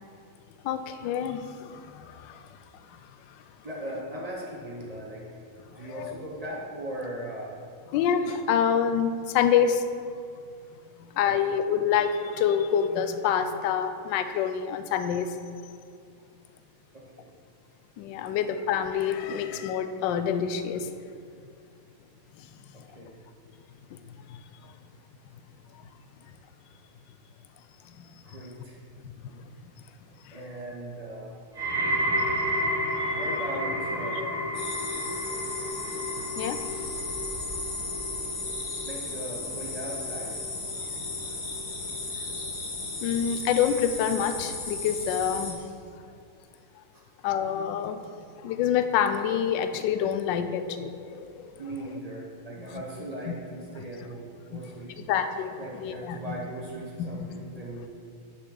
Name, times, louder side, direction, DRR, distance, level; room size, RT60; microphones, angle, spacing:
voice 1, 0.6-2.5 2.9-3.0 3.3-3.4 5.7-6.1 7.9-9.8 11.0-15.3 18.0-20.9 22.4-22.5 24.3-24.7 27.9-28.1 29.0-29.4 30.2-30.4 33.0-33.2 36.4-36.6 43.0-45.6 47.2-48.0 48.4-51.5 52.6-52.8 54.5-54.6 55.0-56.2 57.0-57.4, left 8 dB, 75° left, 9 dB, 1.1 m, -27 dB
voice 2, 3.6-5.4 5.7-7.6 11.3-11.5 16.9-17.3 18.2-18.4 22.7-23.2 28.2-28.8 30.3-31.4 33.1-34.3 38.9-40.4 51.6-54.9 55.6-57.9, right 1 dB, 45° right, -3 dB, 0.4 m, -38 dB
sound 1, 31.6-42.7 43.0-43.5 44.2-44.3, equal, 15° right, 0.9 m, -32 dB
sound 2, 34.5-45.5, left 3 dB, 50° left, 1.6 m, -35 dB
9.9 x 6.2 x 3.9 m, 2.3 s
omnidirectional pair, 2.4 m